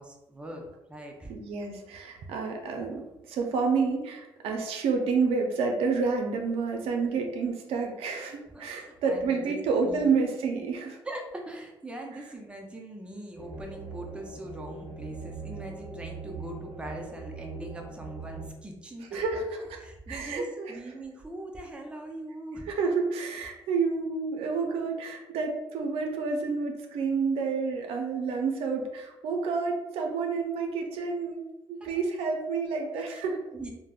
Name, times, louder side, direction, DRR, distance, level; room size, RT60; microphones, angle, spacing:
voice 1, 0.0-1.3 8.5-9.6 9.8-10.1 11.1-19.1 19.8-22.7 31.8-31.9 33.1-33.2 33.5-33.7, right 1 dB, 10° right, 1 dB, 0.5 m, -41 dB
voice 2, 1.3-11.0 19.1-19.8 20.1-20.8 22.7-31.4 31.7-33.4, right 4 dB, 85° right, 2 dB, 0.4 m, -29 dB
sound 1, 13.4-18.5, right 4 dB, 50° right, 0.8 m, -41 dB
3.3 x 2.1 x 2.3 m, 0.97 s
cardioid pair, 90°, 10 cm